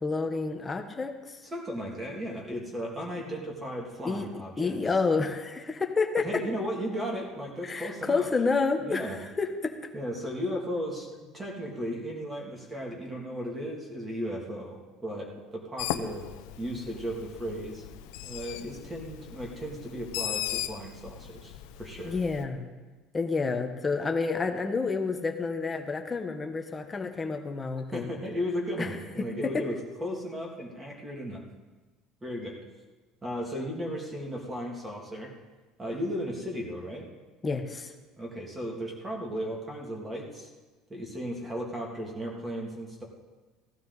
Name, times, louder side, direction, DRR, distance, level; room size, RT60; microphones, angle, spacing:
voice 1, 0.0-1.4 4.0-4.3 4.6-6.2 7.6-9.8 22.0-22.7 23.1-28.1 28.8-28.9 29.4-29.6 37.4-37.9, left 4 dB, 15° left, 5 dB, 1.0 m, -29 dB
voice 2, 1.5-4.8 6.2-8.3 8.8-9.2 9.9-11.1 11.3-16.2 16.6-17.8 18.2-21.5 21.8-22.1 27.9-31.4 32.2-32.6 33.2-35.3 35.8-37.1 38.2-40.5 40.9-43.0, equal, 10° right, -1 dB, 2.4 m, -35 dB
Bird, 15.8-22.4, left 11 dB, 85° left, 0.8 m, -38 dB
15.5 x 15.0 x 4.0 m, 1.2 s
cardioid pair, 170°, 0 cm